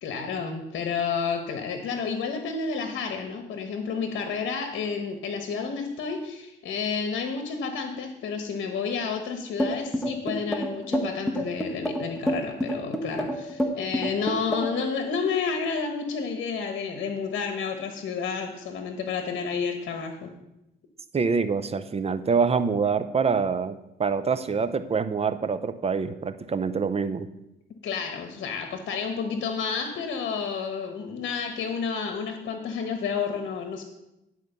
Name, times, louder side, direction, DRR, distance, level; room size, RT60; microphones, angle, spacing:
voice 1, 0.0-20.3 27.8-33.8, left 5 dB, 70° left, 4 dB, 1.2 m, -30 dB
sound 1, 9.6-14.9, equal, ahead, 1.2 m, -28 dB
voice 2, 21.1-27.3, right 5 dB, 30° right, 11 dB, 0.7 m, -25 dB
11.0 x 4.6 x 6.8 m, 0.89 s
cardioid pair, 90°, 20 cm